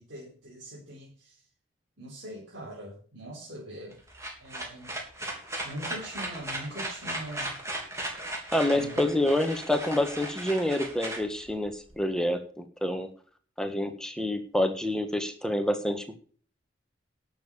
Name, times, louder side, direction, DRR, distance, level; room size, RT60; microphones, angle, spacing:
voice 1, 0.0-1.3 2.0-4.0 4.4-5.0 5.6-7.5 8.7-9.0, right 1 dB, 65° right, -5 dB, 4.3 m, -42 dB
sound 1, 3.9-12.0, right 1 dB, 15° right, 3.3 m, -37 dB
voice 2, 8.5-13.1 13.6-16.2, left 1 dB, 5° left, 6 dB, 1.4 m, -27 dB
11.5 x 7.1 x 7.1 m, 0.44 s
head